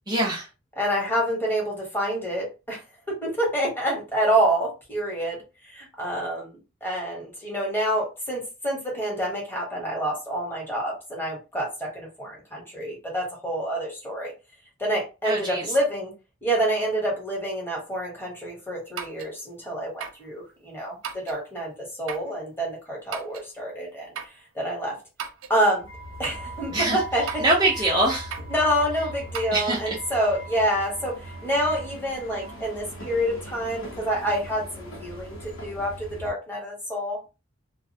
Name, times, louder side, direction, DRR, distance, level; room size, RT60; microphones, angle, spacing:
voice 1, 0.1-0.5 15.2-15.6 26.7-27.0 27.4-28.3 29.5-30.0, right 1 dB, 20° right, -5 dB, 0.5 m, -23 dB
voice 2, 0.8-2.8 3.1-14.3 14.8-16.1 16.4-25.0 25.5-25.8 26.2-27.4 28.5-37.3, right 1 dB, 10° left, -3 dB, 1.0 m, -27 dB
sound 1, 19.0-19.3 20.0-20.3 21.0-21.4 22.1-22.3 23.1-23.5 24.2-24.4 25.2-25.6 26.2-26.5 27.3-27.6 28.3-28.6 29.3-29.5, right 7 dB, 90° right, 0.4 m, -36 dB
sound 2, 25.8-36.3, right 1 dB, 85° left, 0.7 m, -39 dB
2.3 x 2.1 x 2.6 m, 0.28 s
head